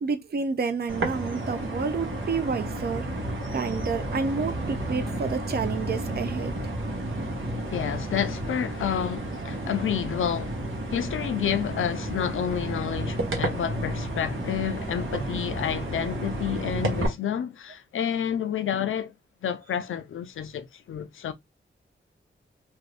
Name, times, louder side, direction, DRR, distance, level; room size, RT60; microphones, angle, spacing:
voice 1, 0.0-3.1 3.5-6.5, right 5 dB, 50° right, 0.5 m, -29 dB
sound 1, 0.9-17.1, right 1 dB, 90° right, 0.9 m, -31 dB
voice 2, 7.7-19.1 19.4-21.3, left 9 dB, 85° left, 0.4 m, -30 dB
2.5 x 2.5 x 3.2 m
wide cardioid pair, 70°, 20 cm